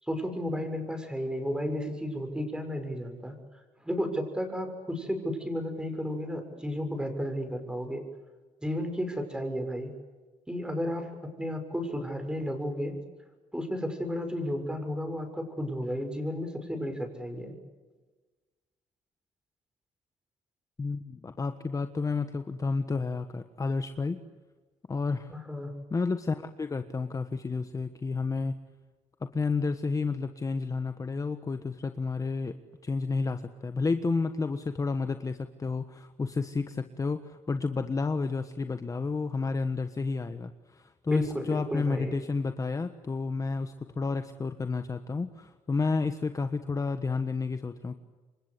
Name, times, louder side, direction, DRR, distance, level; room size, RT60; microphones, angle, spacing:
voice 1, 0.0-3.4 3.8-8.0 8.6-9.9 10.5-13.0 13.5-17.6 25.3-25.7 41.1-42.2, equal, 5° right, 6 dB, 6.6 m, -33 dB
voice 2, 20.8-24.2 24.9-25.3 25.9-28.6 29.3-32.6 32.8-47.9, left 4 dB, 25° left, 8 dB, 1.4 m, -31 dB
28.5 x 24.5 x 8.4 m, 1.3 s
cardioid pair, 105°, 13 cm